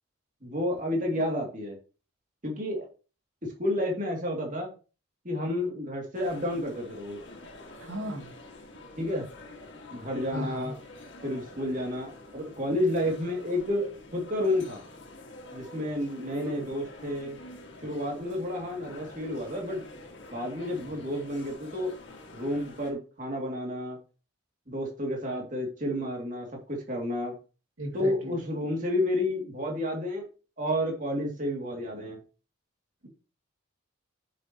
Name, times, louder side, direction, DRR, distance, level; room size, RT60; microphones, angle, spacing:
voice 1, 0.4-1.8 2.4-2.9 3.4-4.7 5.2-7.2 9.0-9.3 9.9-10.8 11.2-14.8 15.5-17.4 17.8-19.9 20.3-21.9 22.3-24.0 24.7-27.3 27.9-30.3 30.6-32.2, left 1 dB, 40° right, 0 dB, 2.5 m, -30 dB
sound 1, 6.1-22.9, left 2 dB, 60° left, 1.9 m, -47 dB
voice 2, 7.8-8.4 10.3-10.7 27.8-28.4, right 1 dB, 80° right, 2 dB, 2.3 m, -35 dB
9.3 x 6.8 x 3.0 m, 0.34 s
head